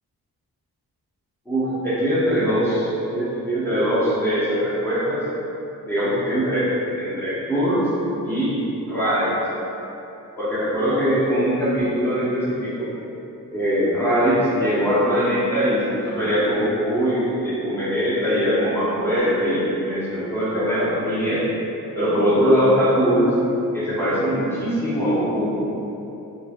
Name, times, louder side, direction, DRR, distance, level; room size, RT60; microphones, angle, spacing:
voice 1, 1.5-5.2 5.8-6.7 7.0-7.9 8.2-8.6 8.9-9.3 10.4-12.9 13.5-21.4 21.9-23.3 23.7-25.6, equal, 5° left, -11 dB, 1.0 m, -21 dB
3.1 x 2.3 x 2.4 m, 3.0 s
cardioid pair, 65°, 38 cm